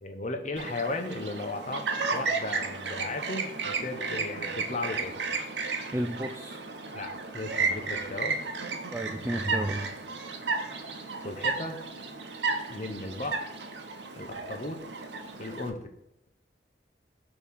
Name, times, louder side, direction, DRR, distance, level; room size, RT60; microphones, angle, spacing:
voice 1, 0.0-1.8 2.1-5.2 6.9-8.4 11.2-11.8 12.7-13.5 14.2-14.8 15.4-15.9, left 2 dB, 40° left, 5 dB, 0.8 m, -35 dB
Chirp tweet, 0.6-15.7, right 4 dB, 80° right, 0.8 m, -33 dB
voice 2, 5.9-6.6 8.9-9.9, right 1 dB, 15° right, 4 dB, 0.3 m, -32 dB
6.5 x 3.0 x 5.3 m, 0.82 s
head